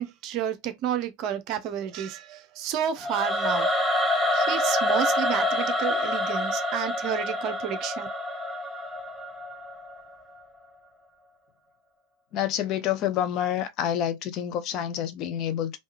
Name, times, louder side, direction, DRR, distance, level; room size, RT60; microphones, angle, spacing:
voice 1, 0.0-3.7 4.3-8.1, right 9 dB, 40° right, 0.6 m, -31 dB
Singing / Musical instrument, 3.0-10.1, left 1 dB, ahead, 0.7 m, -27 dB
voice 2, 12.3-15.8, left 10 dB, 35° left, 0.5 m, -28 dB
3.5 x 2.6 x 3.1 m
figure-of-eight pair, 90°, 0 cm